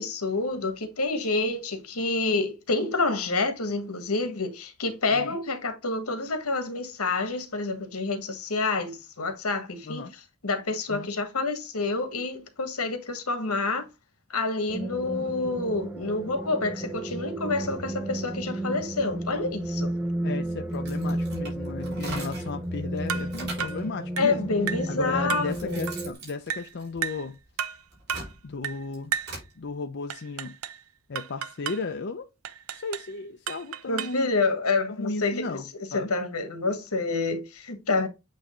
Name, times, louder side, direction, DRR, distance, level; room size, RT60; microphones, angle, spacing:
voice 1, 0.0-10.0 10.4-13.9 14.3-19.9 24.2-25.8 33.9-35.6 35.9-38.1, left 3 dB, 85° left, 1.5 m, -28 dB
sound 1, 14.7-26.1, right 1 dB, 5° right, 0.5 m, -32 dB
voice 2, 20.2-24.4 24.9-27.4 28.4-29.1 29.6-30.6 31.1-32.3 32.7-34.3 34.9-36.1, left 3 dB, 55° left, 0.5 m, -35 dB
sound 2, 20.7-22.6 23.0-23.9 24.7-24.8 25.2-27.4 27.8-29.5, right 2 dB, 50° right, 3.8 m, -41 dB
sound 3, 23.1-23.3 23.6-23.8 24.2-24.3 24.7-24.9 25.3-25.5 25.9-26.0 26.5-26.7 27.0-27.3 27.6-27.8 28.1-28.3 28.6-28.8 29.1-29.4 30.1-30.8 31.1-31.8 32.4-33.1 33.5-34.2, right 8 dB, 70° right, 0.6 m, -33 dB
8.4 x 3.2 x 3.7 m
head